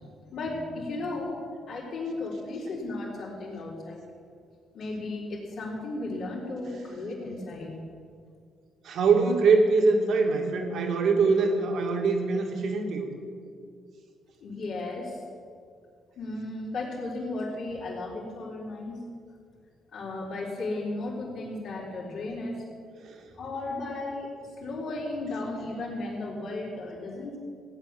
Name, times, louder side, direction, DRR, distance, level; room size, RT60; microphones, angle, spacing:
voice 1, 0.3-1.4 1.7-4.0 4.7-7.8 14.4-15.2 16.2-19.0 19.9-22.6 23.3-24.3 24.6-27.4, left 2 dB, 65° left, -4 dB, 4.1 m, -35 dB
voice 2, 8.8-13.1 23.0-23.2, right 4 dB, 70° right, 2 dB, 2.4 m, -23 dB
16.5 x 9.8 x 7.3 m, 2.3 s
cardioid pair, 90°, 0 cm